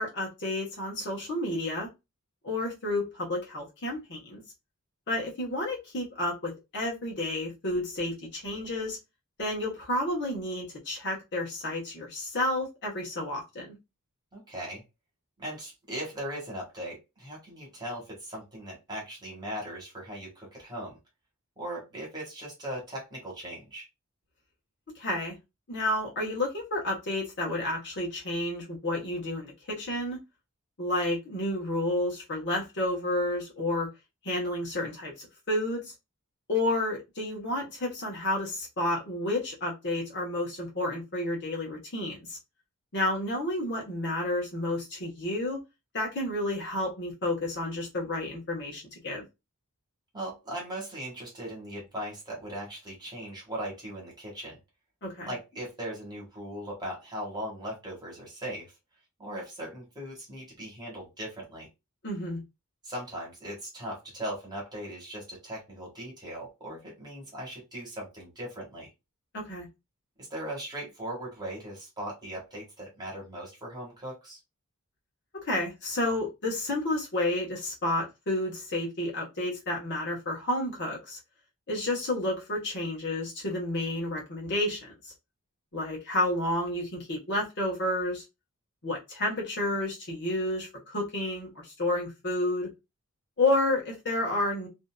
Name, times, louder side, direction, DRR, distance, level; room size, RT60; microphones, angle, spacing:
voice 1, 0.0-1.9 2.4-4.4 5.1-9.0 9.4-13.7 24.9-25.4 25.7-30.2 30.8-33.9 34.2-35.9 36.5-42.4 42.9-45.6 45.9-49.2 55.0-55.3 62.0-62.4 69.3-69.7 75.3-81.2 81.7-85.1 85.7-88.2 88.8-92.7 93.4-94.7, left 1 dB, 50° left, 1.1 m, -30 dB
voice 2, 14.3-14.8 15.4-21.0 21.6-23.9 50.1-54.6 55.2-58.7 59.2-61.7 62.8-68.9 70.2-74.4, right 1 dB, 20° right, 1.4 m, -39 dB
2.7 x 2.6 x 2.2 m
head